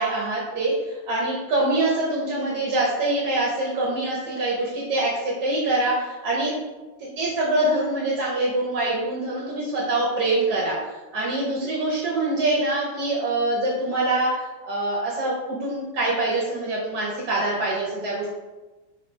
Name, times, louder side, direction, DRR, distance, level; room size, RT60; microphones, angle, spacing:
voice 1, 0.0-6.5 7.0-18.3, right 2 dB, 60° right, -5 dB, 1.4 m, -24 dB
4.1 x 3.7 x 3.2 m, 1.2 s
omnidirectional pair, 2.0 m